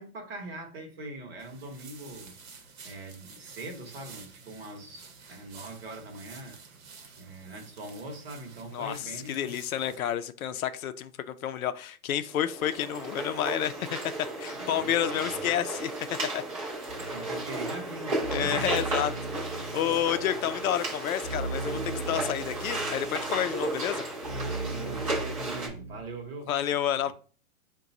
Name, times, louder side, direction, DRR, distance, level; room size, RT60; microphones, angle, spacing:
voice 1, 0.0-2.3 2.8-6.6 7.2-9.5 9.8-10.0 14.6-15.4 17.0-18.7 24.7-26.5, right 2 dB, 40° right, 0.9 m, -42 dB
sound 1, 1.4-10.0, right 5 dB, 65° right, 1.0 m, -51 dB
voice 2, 8.7-14.0 14.4-15.9 16.3-16.4 18.3-19.1 19.7-21.8 22.1-24.0 26.5-27.1, left 10 dB, 70° left, 0.5 m, -30 dB
sound 2, 12.3-25.7, right 2 dB, 25° right, 0.6 m, -34 dB
sound 3, 16.9-26.0, right 3 dB, 20° left, 0.5 m, -39 dB
4.7 x 2.3 x 3.9 m
hypercardioid pair, 170°, 44 cm